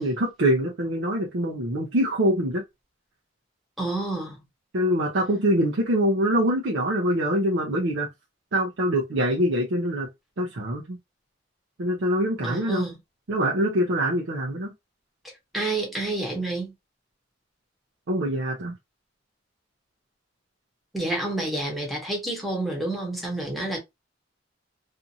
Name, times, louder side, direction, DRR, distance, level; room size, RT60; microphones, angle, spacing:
voice 1, 0.0-2.6 4.7-8.1 8.5-10.1 10.4-11.0 11.8-12.9 13.3-14.7 18.1-18.7, equal, 65° right, 0.6 m, -24 dB
voice 2, 3.8-4.4 12.4-13.0 15.5-16.7 20.9-23.8, right 2 dB, ahead, 1.0 m, -29 dB
2.6 x 2.5 x 2.6 m
head